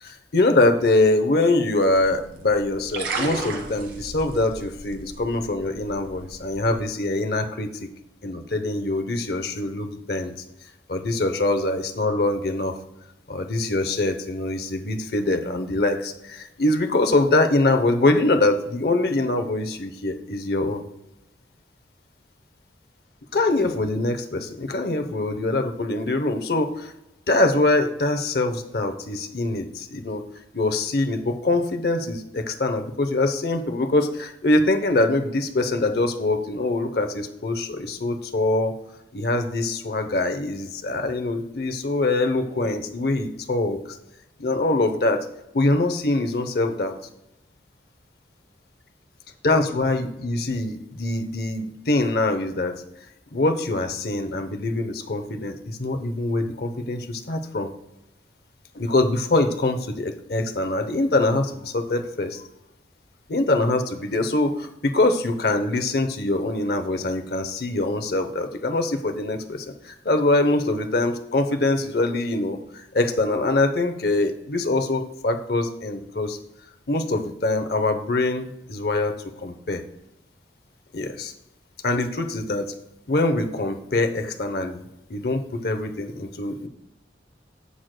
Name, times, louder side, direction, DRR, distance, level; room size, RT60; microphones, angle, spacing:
voice 1, 0.0-7.9 8.2-10.3 10.9-12.7 13.3-20.8 23.3-26.9 27.3-30.2 30.5-38.7 39.1-44.0 44.4-45.2 45.5-47.0 49.4-52.7 53.3-57.7 58.7-62.4 63.3-76.4 76.9-79.8 80.9-81.3 81.8-82.7 83.1-84.8 85.1-86.7, left 2 dB, 55° left, 6 dB, 0.8 m, -23 dB
sound 1, 1.8-6.9, right 3 dB, 85° right, 1.5 m, -35 dB
11.0 x 7.7 x 2.2 m, 0.94 s
head